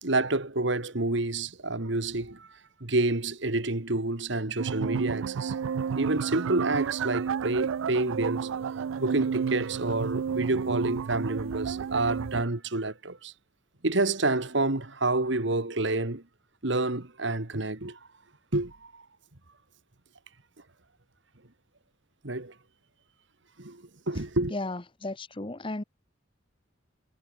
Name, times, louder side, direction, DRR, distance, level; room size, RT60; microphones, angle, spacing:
voice 1, 0.0-2.5 2.8-5.5 6.0-8.5 9.0-13.3 13.8-16.2 16.6-18.0 18.5-19.0 22.2-22.5 23.6-24.5, right 2 dB, 60° right, 2.0 m, -28 dB
sound 1, 4.6-12.4, right 6 dB, 80° right, 0.4 m, -31 dB
voice 2, 24.5-25.8, left 2 dB, 25° left, 1.0 m, -34 dB
head